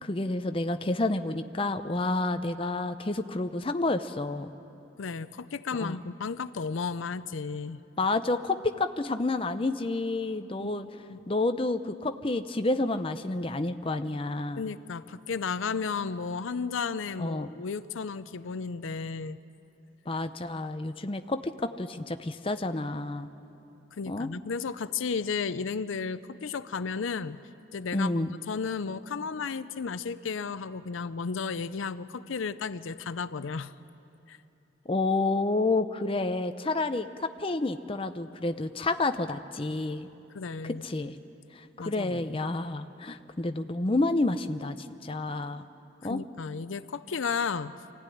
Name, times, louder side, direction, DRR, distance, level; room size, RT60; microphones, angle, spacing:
voice 1, 0.0-4.5 5.7-6.0 8.0-10.9 11.3-14.7 17.2-17.5 20.1-23.3 24.1-24.3 27.9-28.3 34.9-40.1 40.6-41.2 41.5-45.6 46.0-46.2, left 2 dB, 25° left, 8 dB, 0.6 m, -29 dB
voice 2, 5.0-7.8 10.6-10.7 11.0-11.2 14.6-19.4 23.9-27.4 27.7-33.7 34.3-34.4 40.3-40.8 41.8-42.4 46.1-47.7, left 5 dB, 75° left, 14 dB, 0.5 m, -33 dB
24.5 x 15.0 x 10.0 m, 3.0 s
head